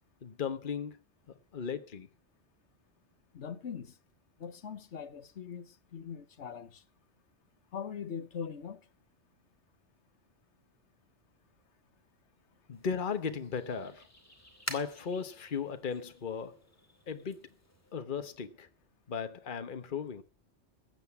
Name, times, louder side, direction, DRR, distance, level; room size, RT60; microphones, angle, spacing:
voice 1, 0.2-1.0 1.3-2.1 12.7-14.1 14.7-16.6 17.1-17.5 17.9-18.7 19.1-20.2, left 6 dB, 50° left, 1.2 m, -36 dB
voice 2, 3.3-4.0 4.4-6.8 7.7-8.8, left 7 dB, 80° left, 1.4 m, -41 dB
sound 1, 12.7-17.9, left 1 dB, 15° left, 2.4 m, -48 dB
14.5 x 8.9 x 7.0 m
omnidirectional pair, 1.2 m